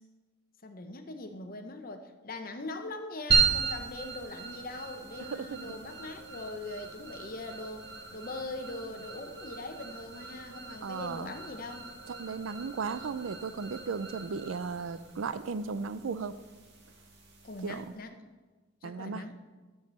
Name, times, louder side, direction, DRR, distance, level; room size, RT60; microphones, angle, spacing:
voice 1, 0.6-11.9 17.4-18.2 18.8-19.4, left 2 dB, 45° left, 7 dB, 0.8 m, -41 dB
sound 1, 3.3-18.0, right 5 dB, 60° right, 1.9 m, -36 dB
voice 2, 5.3-5.8 10.8-11.3 12.1-16.4 17.6-17.9 18.8-19.3, right 5 dB, 80° right, 15 dB, 0.5 m, -36 dB
12.0 x 4.8 x 6.8 m, 1.3 s
head